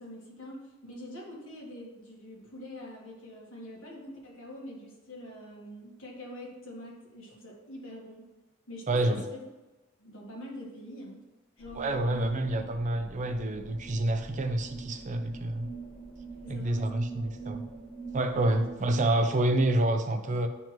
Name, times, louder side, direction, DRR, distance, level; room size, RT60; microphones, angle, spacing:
voice 1, 0.0-8.3 8.7-9.4 10.0-11.2 11.6-12.3 12.6-12.7 15.3-15.4 16.4-17.3 18.5-18.6, left 1 dB, 65° left, -4 dB, 1.5 m, -45 dB
voice 2, 8.9-9.2 11.8-15.7 16.5-17.6 18.1-20.5, right 1 dB, 35° right, 6 dB, 0.5 m, -28 dB
sound 1, 11.6-19.3, right 4 dB, 5° left, 1.9 m, -44 dB
9.0 x 3.5 x 3.0 m, 1.1 s
head